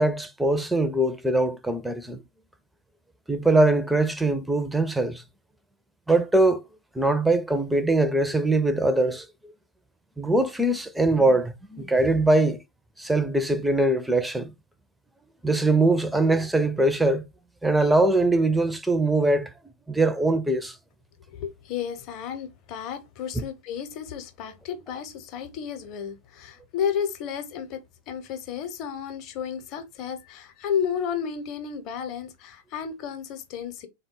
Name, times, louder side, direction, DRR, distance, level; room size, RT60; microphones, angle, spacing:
voice 1, 0.0-2.2 3.3-5.2 6.1-6.6 6.9-9.3 10.2-12.6 13.0-14.5 15.4-17.2 17.6-19.5 19.9-20.8 23.4-23.5, right 2 dB, 5° right, 0.5 m, -22 dB
voice 2, 21.3-33.9, left 8 dB, 40° left, 0.8 m, -32 dB
3.7 x 2.2 x 3.6 m
figure-of-eight pair, 90°, 0 cm